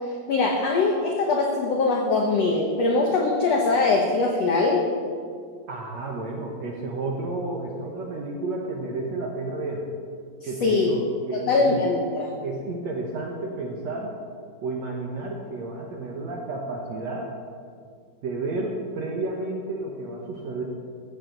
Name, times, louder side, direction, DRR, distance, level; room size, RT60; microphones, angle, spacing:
voice 1, 0.3-4.8 10.4-10.9 11.3-12.4, left 3 dB, 85° left, 1 dB, 1.4 m, -22 dB
voice 2, 5.7-9.9 10.4-11.8 12.4-14.1 14.6-17.3 18.2-20.6, right 2 dB, 65° right, 0 dB, 1.7 m, -31 dB
15.5 x 14.0 x 4.0 m, 2.1 s
omnidirectional pair, 4.5 m